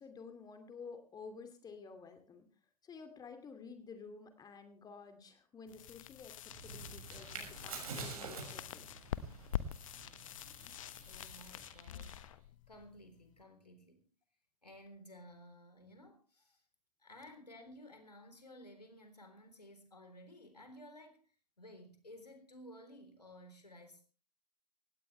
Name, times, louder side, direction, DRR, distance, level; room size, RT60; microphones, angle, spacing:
voice 1, 0.0-2.5 2.8-6.3 6.6-9.0, left 5 dB, 20° left, 8 dB, 2.5 m, -51 dB
sound 1, 5.7-13.4, left 10 dB, 55° left, 1.2 m, -46 dB
sound 2, 6.5-12.2, right 4 dB, 65° right, 6.3 m, -48 dB
voice 2, 11.1-12.4 12.7-14.1 14.6-16.6 17.0-24.1, left 1 dB, 85° left, 7 dB, 3.8 m, -55 dB
18.5 x 17.5 x 3.3 m, 0.34 s
figure-of-eight pair, 100°, 20 cm